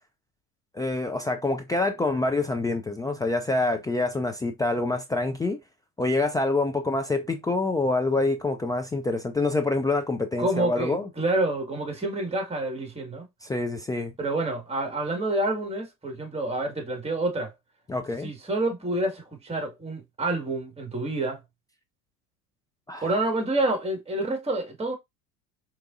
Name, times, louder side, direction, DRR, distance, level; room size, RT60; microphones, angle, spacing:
voice 1, 0.7-5.6 6.0-11.1 13.4-14.1 17.9-18.3 22.9-23.1, left 2 dB, 10° left, 0.3 m, -26 dB
voice 2, 10.4-13.3 14.2-17.5 18.2-21.4 23.0-24.9, right 2 dB, 15° right, 2.0 m, -28 dB
4.6 x 3.0 x 2.5 m
hypercardioid pair, 80°, 45 cm